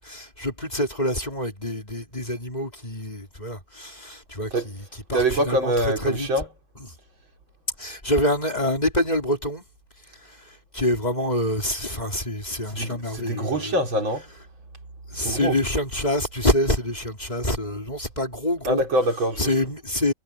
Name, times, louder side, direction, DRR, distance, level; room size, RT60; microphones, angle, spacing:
voice 1, 0.0-4.8 5.1-6.3 7.8-9.6 10.2-10.4 10.7-13.7 15.1-18.8 19.4-20.1, left 1 dB, 20° left, 3.2 m, -26 dB
voice 2, 5.1-6.5 12.7-14.3 15.2-15.6 18.6-19.5, right 1 dB, 85° right, 5.2 m, -24 dB
omnidirectional pair, 2.1 m